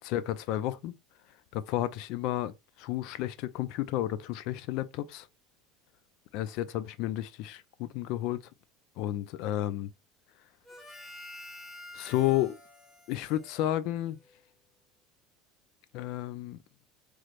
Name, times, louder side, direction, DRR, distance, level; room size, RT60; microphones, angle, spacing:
voice 1, 0.0-1.0 1.5-5.3 6.3-8.4 9.0-9.9 11.9-12.6 13.1-14.2 15.9-16.6, left 13 dB, 55° left, 0.3 m, -32 dB
Harmonica, 10.6-14.4, left 1 dB, 10° left, 0.8 m, -49 dB
3.2 x 3.1 x 2.4 m
cardioid pair, 165°, 0 cm